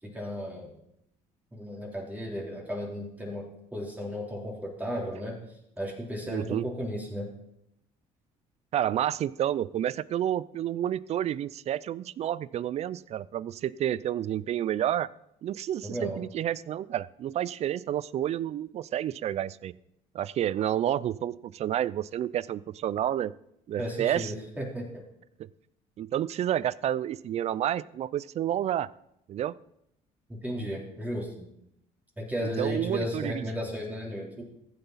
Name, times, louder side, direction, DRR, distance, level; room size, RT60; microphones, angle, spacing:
voice 1, 0.0-0.7 1.5-3.5 3.7-5.4 5.8-7.3 15.8-16.2 23.8-25.0 30.4-31.5 32.2-34.4, equal, 10° right, -3 dB, 3.6 m, -34 dB
voice 2, 6.3-6.6 8.7-15.1 15.4-19.7 20.1-23.3 23.7-24.3 25.4-25.5 26.0-28.9 29.3-29.5 32.6-33.4, right 11 dB, 50° right, 20 dB, 0.4 m, -30 dB
15.0 x 8.0 x 4.1 m, 0.78 s
supercardioid pair, 90°, 15 cm